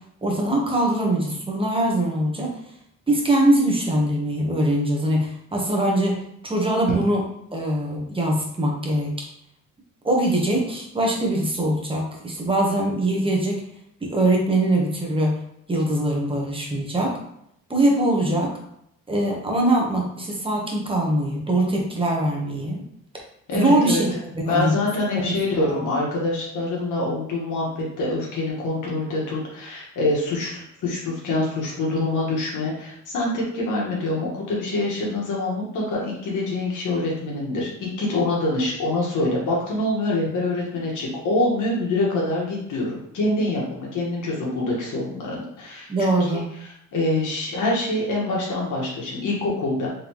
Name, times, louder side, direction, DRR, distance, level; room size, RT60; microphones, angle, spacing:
voice 1, 0.2-2.5 3.1-7.2 7.5-9.2 10.0-13.6 14.0-15.4 15.7-17.2 17.7-18.5 19.1-22.8 23.5-24.1 24.4-24.7 25.2-25.3 25.6-25.8 45.9-46.5, right 1 dB, 15° right, -1 dB, 1.1 m, -22 dB
voice 2, 23.5-24.0 24.5-45.9 46.9-49.9, left 2 dB, 70° left, -3 dB, 1.6 m, -25 dB
3.8 x 3.5 x 3.0 m, 0.75 s
cardioid pair, 95°, 32 cm